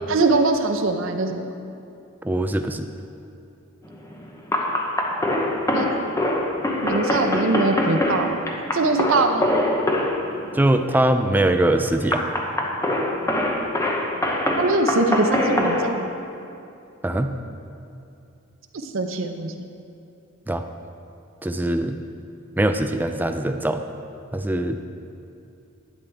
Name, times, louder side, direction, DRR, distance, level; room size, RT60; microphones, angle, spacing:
voice 1, 0.1-1.4 5.7-5.9 6.8-8.3 8.7-9.5 14.6-16.1 18.8-19.7, right 3 dB, 70° right, 5 dB, 0.6 m, -22 dB
voice 2, 2.2-2.9 10.5-12.2 17.0-17.4 20.5-20.6 21.4-22.0 22.6-23.8 24.3-24.8, right 1 dB, 10° right, 7 dB, 0.3 m, -22 dB
sound 1, 3.9-15.9, left 1 dB, 15° left, 0.8 m, -24 dB
11.5 x 9.5 x 3.4 m, 2.6 s
head